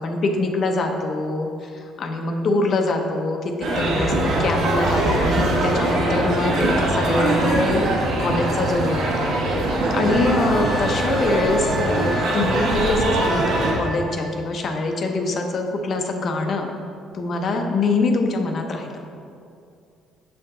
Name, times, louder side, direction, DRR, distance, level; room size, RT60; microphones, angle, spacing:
voice 1, 0.0-7.8 8.2-9.3 9.9-16.7 17.1-18.9, left 2 dB, 40° left, 4 dB, 0.6 m, -24 dB
sound 1, 3.6-13.7, right 1 dB, 75° right, 1.3 m, -22 dB
Wind instrument woodwind instrument, 10.1-14.3 17.0-17.1, equal, ahead, 0.8 m, -33 dB
7.3 x 4.6 x 3.7 m, 2.4 s
cardioid pair, 140°, 0 cm